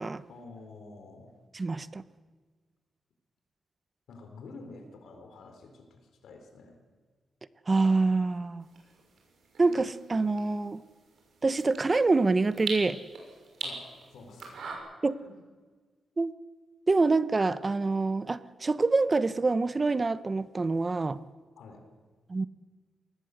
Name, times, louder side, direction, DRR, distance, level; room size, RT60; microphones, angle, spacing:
voice 1, 0.3-1.3 4.1-6.8 13.6-14.7 15.2-15.4 21.6-21.8, left 3 dB, 85° left, 5 dB, 4.2 m, -49 dB
voice 2, 1.5-2.0 7.7-8.6 9.6-10.8 11.4-13.0 15.0-15.2 16.2-16.3 16.9-21.2 22.3-22.5, right 3 dB, 30° right, 15 dB, 0.8 m, -26 dB
sound 1, 8.6-14.7, right 4 dB, 70° right, 6.6 m, -43 dB
23.5 x 19.5 x 8.0 m, 1.5 s
cardioid pair, 110°, 0 cm